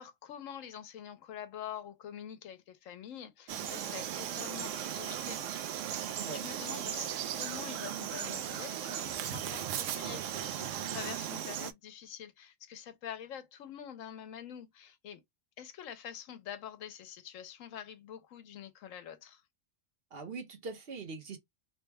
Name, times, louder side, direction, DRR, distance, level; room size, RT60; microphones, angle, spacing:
voice 1, 0.0-5.4 6.3-15.2 15.6-19.4, left 9 dB, 85° left, 1.1 m, -46 dB
Frog, 3.5-11.7, right 10 dB, 75° right, 0.9 m, -37 dB
voice 2, 20.1-21.4, right 4 dB, 50° right, 1.1 m, -42 dB
3.3 x 2.1 x 3.3 m
omnidirectional pair, 1.3 m